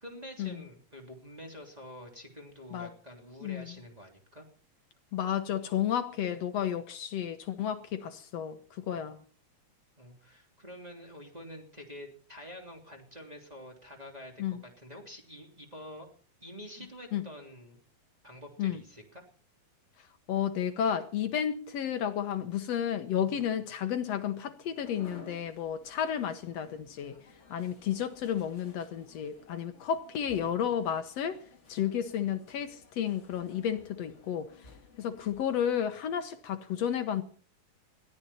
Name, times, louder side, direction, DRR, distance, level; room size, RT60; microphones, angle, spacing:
voice 1, 0.0-4.4 10.0-16.1 16.4-17.8 18.2-19.2, left 1 dB, 10° right, 2.6 m, -47 dB
voice 2, 3.4-3.7 5.1-9.2 14.4-14.6 17.1-17.2 18.6-18.8 20.3-27.2 27.5-31.4 31.7-34.7 35.0-37.2, left 9 dB, 70° left, 1.6 m, -32 dB
sound 1, 24.7-35.4, left 2 dB, 25° left, 1.5 m, -56 dB
21.5 x 15.0 x 4.3 m
omnidirectional pair, 4.3 m